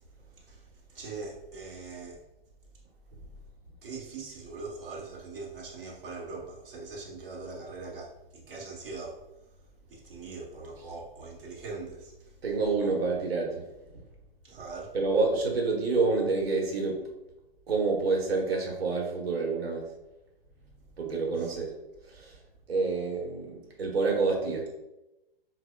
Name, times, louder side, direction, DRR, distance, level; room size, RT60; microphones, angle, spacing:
voice 1, 0.4-2.2 3.8-9.2 9.9-12.3 14.4-14.9 20.8-20.9 21.3-21.6, right 3 dB, 65° right, -4 dB, 1.1 m, -42 dB
voice 2, 12.4-13.6 13.9-14.0 14.9-17.0 17.7-19.9 21.0-21.7 22.1-22.4 22.7-24.7, right 4 dB, 90° right, -1 dB, 1.1 m, -28 dB
5.9 x 2.1 x 2.2 m, 0.95 s
hypercardioid pair, 165°, 29 cm